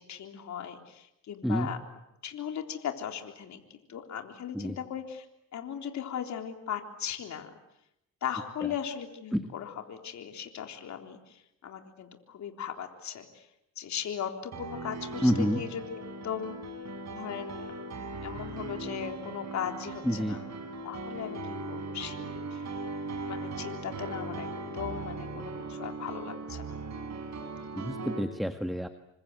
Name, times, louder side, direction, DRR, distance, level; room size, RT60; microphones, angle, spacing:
voice 1, 0.1-1.8 2.2-5.3 5.5-7.5 8.2-13.5 13.8-16.6 17.1-17.7 18.2-20.4 20.8-22.7 23.3-26.8, left 8 dB, 65° left, 5 dB, 3.7 m, -38 dB
Piano, 14.5-28.2, right 3 dB, 65° right, 5.7 m, -39 dB
voice 2, 15.2-15.6 20.0-20.4 27.7-28.9, equal, ahead, 8 dB, 1.7 m, -28 dB
28.0 x 25.5 x 8.1 m, 0.84 s
cardioid pair, 90°, 30 cm